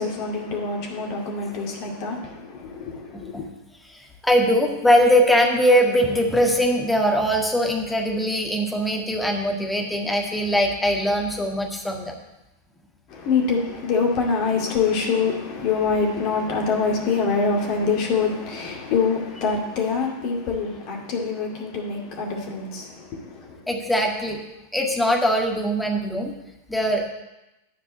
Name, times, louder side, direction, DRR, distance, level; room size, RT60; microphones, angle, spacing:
voice 1, 0.0-3.5 13.1-23.6, left 5 dB, 40° left, 0 dB, 2.2 m, -25 dB
voice 2, 3.1-3.5 3.8-12.1 23.7-24.4 24.7-26.3 26.7-27.0, equal, 5° left, 1 dB, 1.7 m, -21 dB
11.5 x 4.8 x 8.2 m, 0.96 s
figure-of-eight pair, 90°, 0 cm